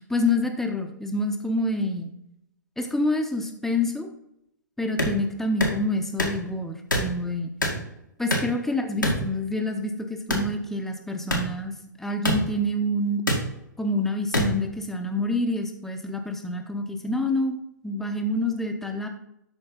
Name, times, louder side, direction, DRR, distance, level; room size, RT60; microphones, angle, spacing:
voice 1, 0.1-2.1 2.8-4.1 4.8-7.5 8.2-11.7 12.0-13.2 13.8-17.6 17.8-19.1, left 1 dB, 5° left, 4 dB, 1.0 m, -27 dB
sound 1, 5.0-5.1 5.6-5.8 6.2-6.4 6.9-7.1 7.6-7.8 8.3-8.5 9.0-9.2 10.3-10.5 11.3-11.4 12.2-12.4 13.3-13.4 14.3-14.5, equal, 85° left, 2.0 m, -24 dB
12.0 x 4.4 x 3.9 m, 0.80 s
figure-of-eight pair, 115°, 10 cm